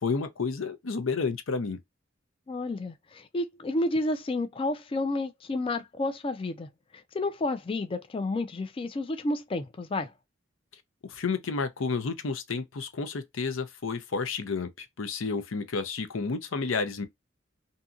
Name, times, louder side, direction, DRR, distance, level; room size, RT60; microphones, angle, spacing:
voice 1, 0.0-1.8 11.1-17.1, left 4 dB, 85° left, 0.6 m, -31 dB
voice 2, 2.5-10.1, left 2 dB, 25° left, 0.3 m, -31 dB
2.7 x 2.6 x 2.3 m
head